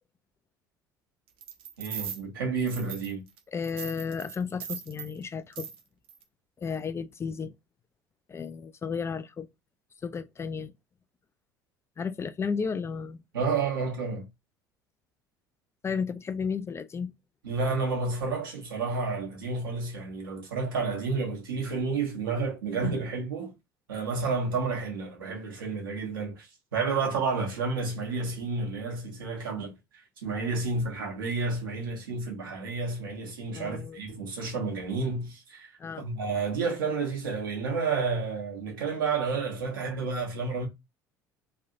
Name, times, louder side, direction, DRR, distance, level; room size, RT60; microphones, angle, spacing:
sound 1, 1.4-2.2 2.7-3.4 3.6-5.1 5.5-5.8 6.1-6.2, right 8 dB, 55° right, 0.7 m, -39 dB
voice 1, 1.8-3.3 13.3-14.3 17.4-23.5 23.9-29.7 30.2-35.7 36.0-40.7, right 4 dB, 80° right, 1.1 m, -30 dB
voice 2, 3.5-5.7 6.6-7.5 8.3-9.5 10.0-10.7 12.0-13.2 15.8-17.1 33.5-34.0 35.8-36.0, left 6 dB, 25° left, 0.3 m, -33 dB
3.2 x 2.6 x 2.6 m
figure-of-eight pair, 60°, 11 cm